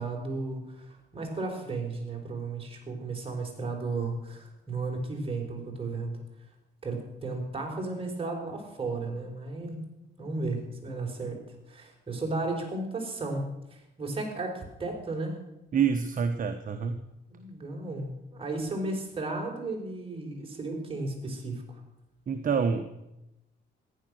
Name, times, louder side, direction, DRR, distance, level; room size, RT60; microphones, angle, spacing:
voice 1, 0.0-6.2 6.8-9.9 10.2-11.4 11.7-13.4 13.7-15.4 17.3-21.8, right 3 dB, 30° right, 1 dB, 4.6 m, -34 dB
voice 2, 15.7-17.0 22.3-22.9, right 6 dB, 45° right, 7 dB, 1.1 m, -27 dB
14.5 x 10.5 x 6.3 m, 0.90 s
cardioid pair, 90°, 20 cm